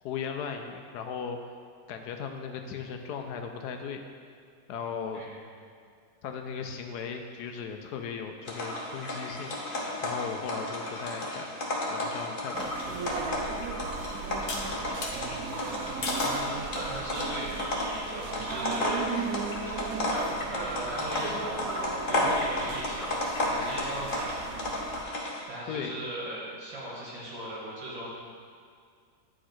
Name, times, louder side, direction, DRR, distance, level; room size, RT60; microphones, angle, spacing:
voice 1, 0.0-1.4 1.9-4.0 4.7-5.2 6.2-9.5 10.0-11.5 11.9-13.3 25.7-26.0, left 6 dB, 75° left, 5 dB, 1.1 m, -37 dB
sound 1, 8.4-25.4, left 1 dB, 35° left, 0.9 m, -33 dB
sound 2, 12.5-25.0, right 6 dB, 70° right, 0.8 m, -38 dB
sound 3, 14.5-15.2 16.0-16.4 17.1-17.5, left 3 dB, 55° left, 1.3 m, -35 dB
voice 2, 15.1-19.0 20.1-21.8 22.1-24.5 25.5-28.1, right 1 dB, 85° right, -6 dB, 2.7 m, -38 dB
9.0 x 4.9 x 4.4 m, 2.2 s
omnidirectional pair, 1.9 m